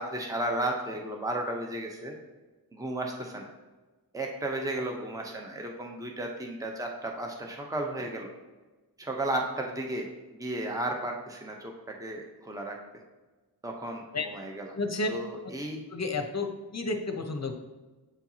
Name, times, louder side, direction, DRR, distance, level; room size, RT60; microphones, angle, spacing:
voice 1, 0.0-2.2 2.7-3.5 4.1-8.3 9.0-10.1 10.4-11.7 12.0-12.8 13.6-14.8 15.1-15.8, right 1 dB, 10° right, 1 dB, 0.8 m, -34 dB
voice 2, 14.7-15.1 15.9-17.5, left 3 dB, 40° left, 5 dB, 0.8 m, -31 dB
7.9 x 4.5 x 2.9 m, 1.2 s
wide cardioid pair, 65°, 42 cm